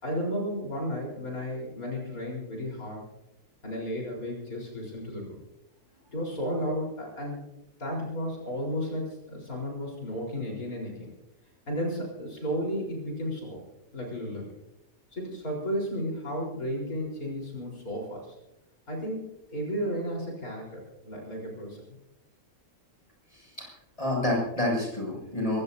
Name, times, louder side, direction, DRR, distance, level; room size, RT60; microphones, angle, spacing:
voice 1, 0.0-3.0 3.6-5.4 6.1-7.4 7.8-11.1 11.7-13.6 13.9-14.5 15.1-18.3 18.9-21.8, equal, 70° left, -2 dB, 4.7 m, -33 dB
voice 2, 23.3-23.7 24.0-25.6, left 1 dB, 25° left, -2 dB, 6.7 m, -28 dB
24.0 x 17.0 x 2.7 m, 0.89 s
omnidirectional pair, 1.6 m